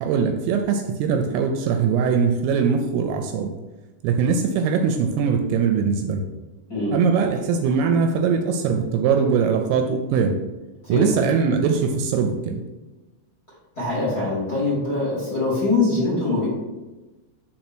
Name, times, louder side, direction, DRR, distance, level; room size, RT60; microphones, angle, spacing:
voice 1, 0.0-3.5 4.0-6.2 6.9-10.3 10.9-12.6, right 6 dB, 80° right, 5 dB, 2.4 m, -21 dB
voice 2, 6.7-7.0 10.8-11.1 13.7-16.5, left 2 dB, 30° left, -8 dB, 2.0 m, -23 dB
5.3 x 4.3 x 6.0 m, 1.1 s
omnidirectional pair, 4.8 m